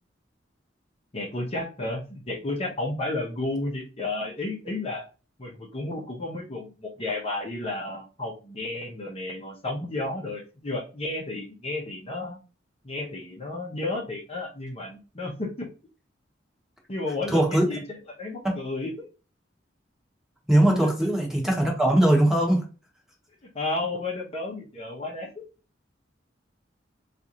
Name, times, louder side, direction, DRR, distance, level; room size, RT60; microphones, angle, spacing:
voice 1, 1.1-5.1 5.4-12.4 12.8-15.7 16.9-19.1 20.8-21.1 23.5-25.5, left 2 dB, 35° left, 0.8 m, -32 dB
voice 2, 17.3-17.6 18.4-18.5 20.5-22.6, right 1 dB, ahead, 1.0 m, -20 dB
3.8 x 2.5 x 2.9 m
head